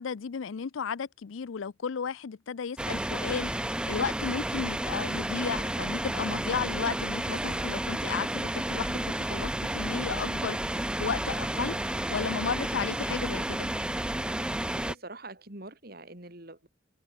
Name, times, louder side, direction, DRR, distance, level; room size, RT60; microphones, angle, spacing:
voice 1, 0.0-3.5 3.9-13.7, left 6 dB, 85° left, 0.5 m, -34 dB
sound 1, 2.8-15.0, right 1 dB, 5° right, 0.4 m, -31 dB
voice 2, 14.7-16.7, right 2 dB, 50° right, 3.7 m, -45 dB
head